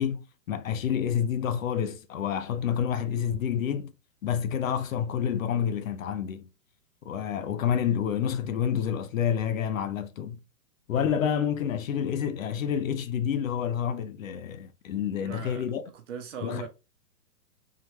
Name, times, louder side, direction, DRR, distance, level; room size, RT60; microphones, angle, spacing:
voice 1, 0.0-3.9 4.2-6.5 7.0-10.4 10.9-15.8 16.4-16.7, left 8 dB, 55° left, 0.7 m, -28 dB
voice 2, 15.2-15.7 15.9-16.7, right 7 dB, 50° right, 1.1 m, -39 dB
3.8 x 3.1 x 3.0 m
hypercardioid pair, 165°, 47 cm